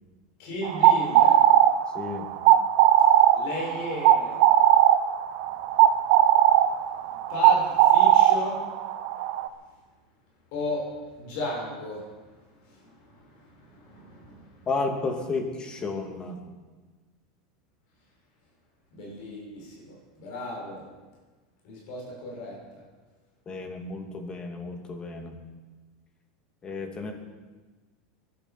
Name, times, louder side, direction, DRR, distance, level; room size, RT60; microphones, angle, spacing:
voice 1, 0.4-1.4 3.3-4.4 5.8-5.9 7.0-8.6 10.5-10.9 11.2-12.1 12.6-14.6 18.9-20.8 21.6-22.8, left 1 dB, 65° left, -3 dB, 6.4 m, -35 dB
sound 1, 0.6-9.5, right 12 dB, 65° right, 1.0 m, -19 dB
voice 2, 1.9-2.3 14.7-16.4 23.5-25.4 26.6-27.1, left 3 dB, 25° left, 5 dB, 2.5 m, -32 dB
19.0 x 12.0 x 6.0 m, 1.3 s
supercardioid pair, 125°, 3 cm